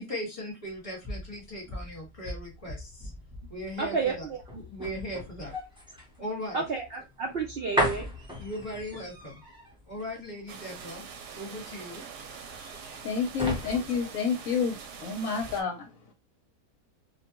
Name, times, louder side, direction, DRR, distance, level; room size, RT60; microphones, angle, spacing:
voice 1, 0.0-3.1 3.5-4.2 4.5-5.6 6.2-6.6 8.4-9.4 9.9-11.1 11.3-12.1, equal, 25° left, 1.3 m, -38 dB
sound 1, 0.7-15.0 15.4-15.6, equal, 5° right, 0.5 m, -37 dB
voice 2, 3.8-4.6 6.5-8.1, right 4 dB, 70° right, 0.5 m, -31 dB
sound 2, 10.5-15.6, right 6 dB, 85° right, 1.2 m, -44 dB
voice 3, 13.0-15.9, left 6 dB, 65° left, 1.0 m, -29 dB
2.6 x 2.2 x 2.9 m
omnidirectional pair, 1.7 m